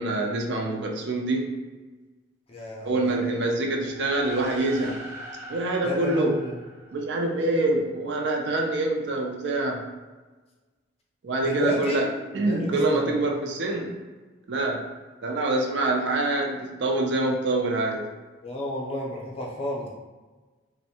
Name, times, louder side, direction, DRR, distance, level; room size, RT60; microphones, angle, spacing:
voice 1, 0.0-1.6 2.8-5.0 5.5-6.4 6.9-9.8 11.2-12.1 12.3-14.0 14.5-14.9 15.2-18.1, right 2 dB, 65° right, 1 dB, 0.4 m, -25 dB
voice 2, 2.5-3.4 5.8-6.5 11.4-12.1 12.5-13.2 18.4-19.9, equal, 30° left, -3 dB, 0.5 m, -31 dB
sound 1, 3.8-7.5, right 1 dB, 15° right, 0.6 m, -42 dB
2.5 x 2.1 x 2.7 m, 1.3 s
head